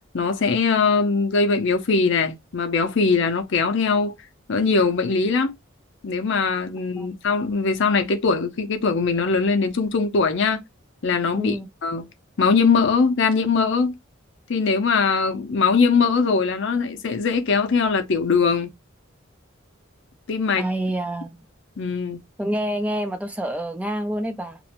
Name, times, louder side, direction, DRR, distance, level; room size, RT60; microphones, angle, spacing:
voice 1, 0.1-4.1 4.5-5.5 6.0-10.6 11.0-11.5 11.8-12.1 12.4-13.9 14.5-18.7 20.3-20.6 21.8-22.2, left 4 dB, 60° left, 0.6 m, -21 dB
voice 2, 11.4-11.7 20.6-21.4 22.4-24.6, right 1 dB, 5° right, 0.4 m, -27 dB
2.5 x 2.1 x 2.9 m
head